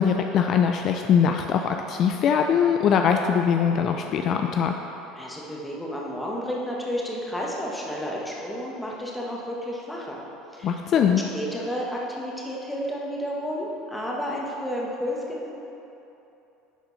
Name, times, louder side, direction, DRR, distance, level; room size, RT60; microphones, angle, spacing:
voice 1, 0.0-4.7 10.6-11.2, left 7 dB, 50° left, 4 dB, 0.4 m, -22 dB
voice 2, 5.1-10.2 10.5-15.5, equal, 5° left, -3 dB, 1.5 m, -31 dB
10.0 x 4.3 x 4.1 m, 3.0 s
hypercardioid pair, 85°, 0 cm